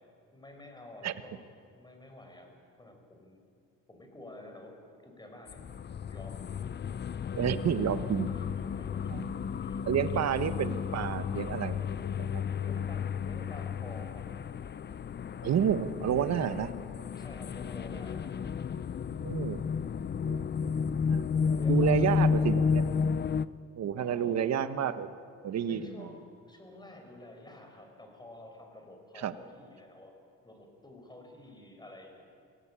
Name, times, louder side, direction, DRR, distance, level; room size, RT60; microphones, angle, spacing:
voice 1, 0.3-1.5 1.7-3.4 3.9-4.8 5.0-7.1 8.3-9.3 9.6-9.9 12.6-14.3 17.2-18.3 21.1-22.5 23.9-24.5 25.7-30.1 30.4-32.2, left 1 dB, 15° left, 3 dB, 5.7 m, -50 dB
sound 1, 5.5-23.5, left 6 dB, 35° left, 0.6 m, -32 dB
voice 2, 7.3-8.3 9.1-9.2 9.8-11.8 12.2-12.4 15.4-16.7 19.2-19.7 20.3-20.7 21.1-21.2 21.7-22.8 23.8-25.2 25.4-26.1 29.1-29.3, right 9 dB, 60° right, 11 dB, 1.2 m, -30 dB
25.0 x 17.0 x 8.9 m, 2.4 s
cardioid pair, 90°, 30 cm